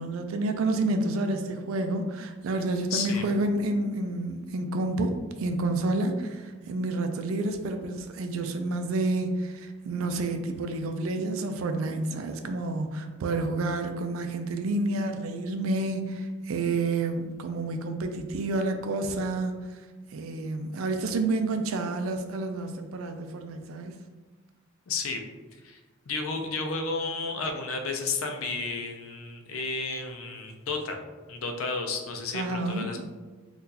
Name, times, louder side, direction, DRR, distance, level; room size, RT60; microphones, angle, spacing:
voice 1, 0.0-5.1 5.4-19.5 20.1-24.0 32.3-33.0, right 2 dB, 80° right, 6 dB, 0.4 m, -29 dB
voice 2, 2.9-3.3 24.9-25.2 25.6-25.8 26.1-33.0, left 4 dB, 80° left, 4 dB, 0.5 m, -32 dB
3.7 x 2.4 x 2.8 m, 1.3 s
head